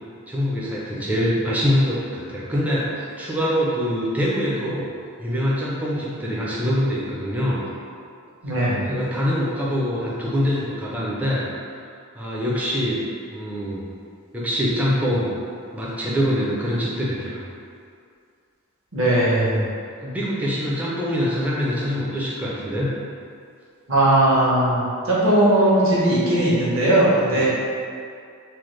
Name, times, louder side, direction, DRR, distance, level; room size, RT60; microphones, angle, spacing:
voice 1, 0.3-4.9 5.2-7.6 8.9-11.4 11.7-11.8 12.2-13.0 13.3-13.8 14.3-15.3 15.7-17.4 20.0-22.9 27.3-27.4, equal, 5° right, -6 dB, 0.4 m, -24 dB
voice 2, 8.4-8.9 18.9-19.6 23.9-27.4, right 1 dB, 65° right, -8 dB, 0.9 m, -18 dB
3.3 x 2.0 x 3.1 m, 2.3 s
head